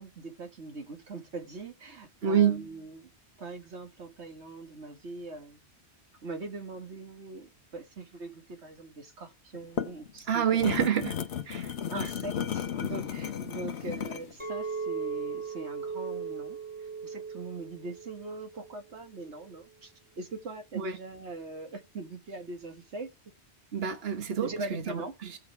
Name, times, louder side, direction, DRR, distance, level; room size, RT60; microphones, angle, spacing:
voice 1, 0.0-3.1 3.4-5.6 6.2-10.6 11.9-16.6 17.0-23.1 24.4-25.1, right 3 dB, 90° right, 2.0 m, -41 dB
voice 2, 2.2-2.7 10.3-11.2 11.5-11.7 12.0-12.1 20.7-21.0 23.7-25.4, right 8 dB, 65° right, 1.5 m, -28 dB
sound 1, 9.5-14.3, left 8 dB, 80° left, 1.1 m, -34 dB
Chink clink, 14.4-18.7 19.1-19.5, right 5 dB, 10° right, 2.5 m, -38 dB
17.0 x 5.9 x 4.7 m
omnidirectional pair, 1.1 m